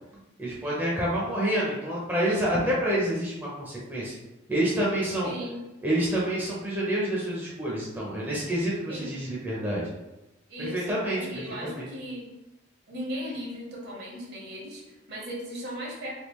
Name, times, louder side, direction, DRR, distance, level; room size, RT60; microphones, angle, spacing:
voice 1, 0.4-4.1 4.5-5.3 5.8-9.8 10.6-11.2 11.6-11.9, right 1 dB, 10° right, -6 dB, 0.6 m, -28 dB
voice 2, 5.2-5.6 8.9-9.2 10.5-12.3 12.9-16.1, equal, 55° right, -3 dB, 0.9 m, -37 dB
3.5 x 2.3 x 3.0 m, 0.99 s
head